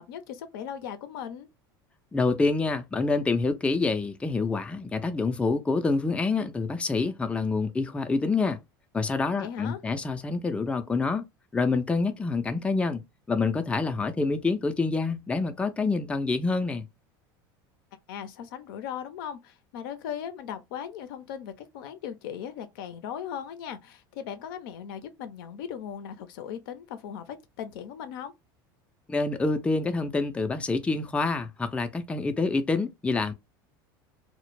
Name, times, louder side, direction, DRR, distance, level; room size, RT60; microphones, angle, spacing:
voice 1, 0.0-1.5 9.4-9.8 18.1-28.3, left 9 dB, 75° left, 0.5 m, -38 dB
voice 2, 2.1-8.6 8.9-11.2 11.5-13.0 13.3-16.8 29.1-33.3, left 3 dB, 10° left, 0.4 m, -27 dB
2.1 x 2.0 x 3.0 m
supercardioid pair, 95°, 12 cm